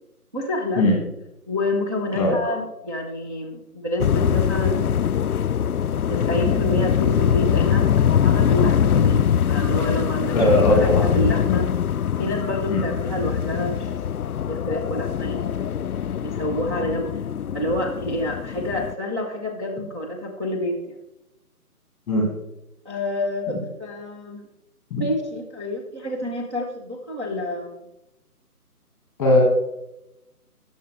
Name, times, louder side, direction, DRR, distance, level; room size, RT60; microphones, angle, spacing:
voice 1, 0.3-0.9 1.5-5.0 6.1-10.4 10.7-11.7 12.2-13.9 14.5-15.6 16.2-17.2 17.5-21.0 22.8-24.4 24.9-27.8, left 1 dB, 20° right, -3 dB, 0.7 m, -28 dB
sound 1, 4.0-18.9, left 8 dB, 70° left, 0.5 m, -22 dB
voice 2, 10.3-11.1 12.7-12.8 22.1-22.3 24.9-25.0 29.2-29.4, left 1 dB, 5° left, 0 dB, 1.4 m, -18 dB
19.5 x 6.9 x 3.2 m, 0.90 s
figure-of-eight pair, 150°, 46 cm